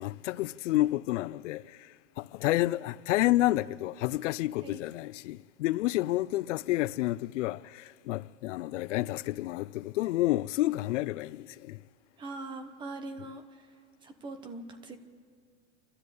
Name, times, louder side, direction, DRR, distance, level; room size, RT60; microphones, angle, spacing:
voice 1, 0.0-1.8 2.2-11.8, left 16 dB, 90° left, 0.6 m, -30 dB
voice 2, 12.2-15.0, right 2 dB, 15° right, 0.9 m, -42 dB
27.5 x 13.0 x 8.3 m
supercardioid pair, 175°, 35 cm